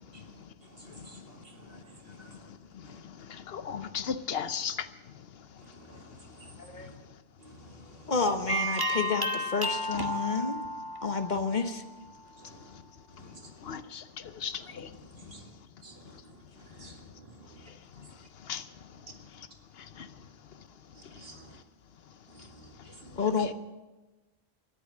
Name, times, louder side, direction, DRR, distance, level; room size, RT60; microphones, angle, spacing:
voice 1, 0.1-2.4 2.8-3.0 5.6-7.0 7.4-8.1 12.4-12.7 13.2-13.4 14.6-15.5 15.8-17.7 18.0-18.1 21.0-21.6 22.3-23.2, right 2 dB, 70° right, 2 dB, 2.4 m, -53 dB
voice 2, 3.3-4.8 13.6-14.0 14.4-14.9 18.5-18.6 20.0-20.1 23.4-23.5, left 7 dB, 75° left, 12 dB, 1.0 m, -35 dB
voice 3, 6.6-6.9 8.1-10.6 11.0-11.8 23.2-23.5, left 4 dB, 50° left, 8 dB, 1.1 m, -30 dB
sound 1, 8.5-12.0, equal, 20° right, 1.4 m, -32 dB
13.5 x 10.5 x 8.6 m, 1.1 s
omnidirectional pair, 1.0 m